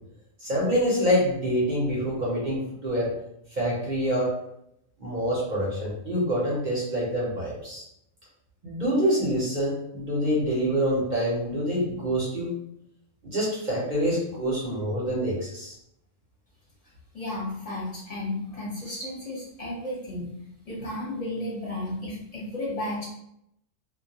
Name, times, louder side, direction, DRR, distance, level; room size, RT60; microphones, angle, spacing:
voice 1, 0.4-3.1 3.6-4.3 5.0-7.8 8.6-12.5 13.2-15.7, equal, 45° right, -5 dB, 0.7 m, -26 dB
voice 2, 17.1-20.3 20.6-23.0, left 1 dB, 35° left, -6 dB, 0.8 m, -33 dB
2.2 x 2.1 x 2.8 m, 0.77 s
omnidirectional pair, 1.3 m